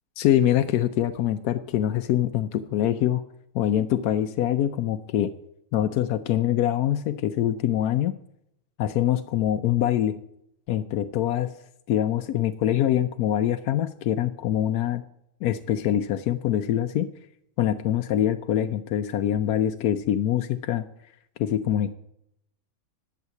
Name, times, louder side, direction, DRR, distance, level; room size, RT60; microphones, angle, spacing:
voice 1, 0.2-3.2 3.5-5.3 5.7-8.1 8.8-10.2 10.7-11.5 11.9-15.0 15.4-17.1 17.6-20.9 21.4-21.9, left 11 dB, 90° left, 8 dB, 1.1 m, -24 dB
11.0 x 7.4 x 8.2 m, 0.79 s
omnidirectional pair, 1.6 m